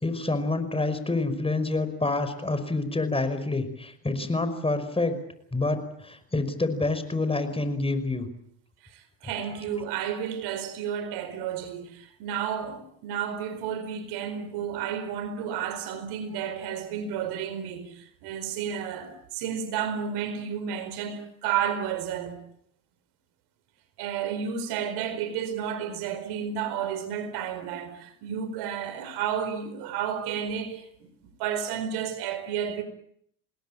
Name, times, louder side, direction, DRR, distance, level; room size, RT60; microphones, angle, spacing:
voice 1, 0.0-5.2 5.5-8.3, left 2 dB, 15° left, 5.4 m, -27 dB
voice 2, 8.8-22.4 24.0-31.1 31.4-32.8, right 8 dB, 75° right, 4.5 m, -32 dB
28.0 x 20.0 x 8.9 m
supercardioid pair, 75°, 39 cm